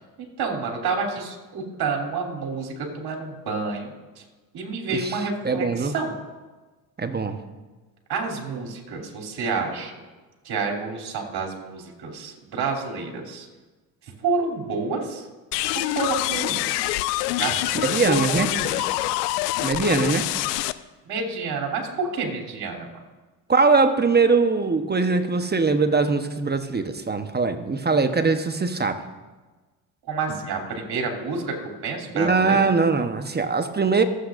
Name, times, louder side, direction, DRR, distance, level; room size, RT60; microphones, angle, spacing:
voice 1, 0.4-4.2 4.5-6.2 8.1-10.0 10.4-13.5 14.0-15.3 15.7-16.9 17.4-18.9 21.0-22.9 30.1-32.7, right 4 dB, 55° right, 1 dB, 3.2 m, -29 dB
voice 2, 5.4-5.9 7.0-7.4 17.8-18.5 19.6-20.2 23.5-29.0 32.1-34.0, right 4 dB, 20° right, 8 dB, 1.0 m, -21 dB
sound 1, 15.5-20.7, left 17 dB, 90° left, 0.5 m, -25 dB
24.0 x 8.4 x 2.6 m, 1.2 s
hypercardioid pair, 70°, 46 cm